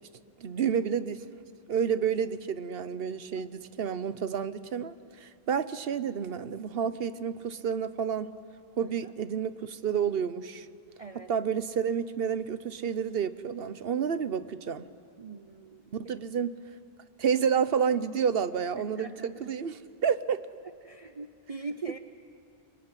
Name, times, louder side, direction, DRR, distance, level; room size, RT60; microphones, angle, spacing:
voice 1, 0.4-1.3 1.7-8.3 8.8-10.7 11.3-14.9 15.9-16.5 17.2-20.4, right 7 dB, 60° right, 13 dB, 1.1 m, -30 dB
voice 2, 3.4-3.8 8.8-8.9 11.0-11.3 15.2-16.0 18.8-19.5 20.8-22.0, right 4 dB, 35° right, 9 dB, 0.8 m, -42 dB
25.0 x 24.0 x 9.9 m, 2.4 s
omnidirectional pair, 1.1 m